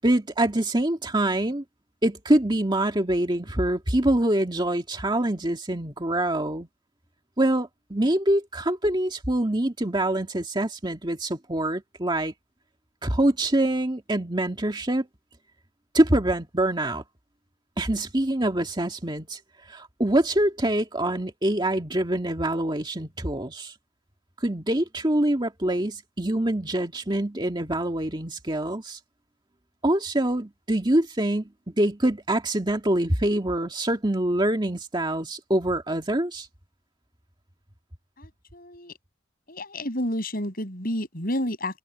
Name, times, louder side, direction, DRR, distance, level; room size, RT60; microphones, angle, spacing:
voice 1, 0.0-1.6 2.0-6.7 7.4-12.3 13.0-15.1 15.9-17.0 17.8-19.4 19.7-23.7 24.4-29.0 29.8-31.5 31.8-36.5, right 1 dB, 20° right, 2.2 m, -25 dB
voice 2, 38.2-38.9 39.5-41.8, left 1 dB, 45° left, 6.5 m, -30 dB
head